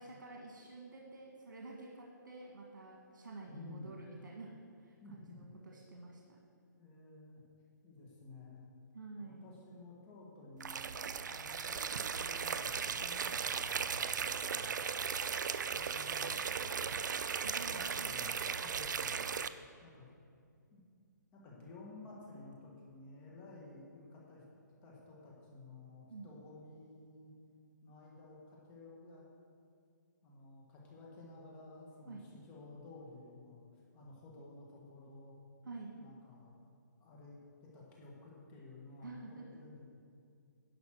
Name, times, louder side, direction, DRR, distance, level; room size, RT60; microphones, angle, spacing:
voice 1, 0.0-6.4 8.9-9.5 17.1-18.3 26.1-26.3 32.1-32.2 35.6-35.9 39.0-39.4, right 3 dB, 90° right, -1 dB, 1.5 m, -49 dB
voice 2, 3.5-3.9 5.0-5.5 6.8-7.4 7.8-8.6 9.1-10.9 11.3-14.3 14.5-14.9 15.6-16.9 17.6-19.2 19.8-20.1 20.7-20.8 21.3-24.4 24.8-27.3 27.8-29.3 30.2-35.4 35.9-36.5 37.0-39.2 39.5-39.9, left 3 dB, 15° left, -3 dB, 1.4 m, -54 dB
sound 1, 10.6-19.5, right 6 dB, 70° right, 0.4 m, -37 dB
11.0 x 5.2 x 6.3 m, 2.3 s
hypercardioid pair, 165°, 10 cm